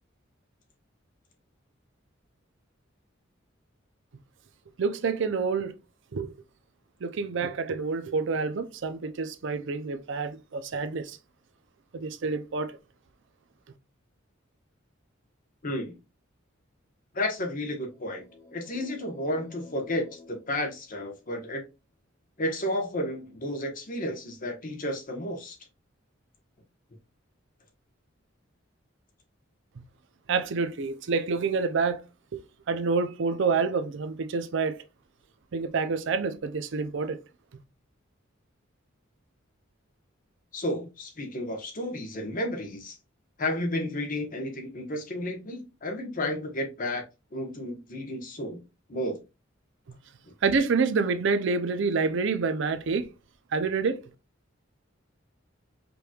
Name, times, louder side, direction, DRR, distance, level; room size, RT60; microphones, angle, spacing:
voice 1, 4.8-5.7 6.1-6.4 7.0-11.2 11.9-12.8 30.3-32.0 32.3-34.8 35.5-37.2 50.4-53.1 53.5-54.0, right 4 dB, 65° right, 0.5 m, -28 dB
voice 2, 15.6-15.9 17.1-18.2 18.5-21.6 22.4-25.6 40.5-43.0 43.4-47.0 47.3-48.6 48.9-49.2, left 1 dB, 45° left, 1.1 m, -32 dB
sound 1, 17.6-21.4, left 2 dB, 10° left, 1.2 m, -52 dB
5.2 x 3.0 x 2.3 m
head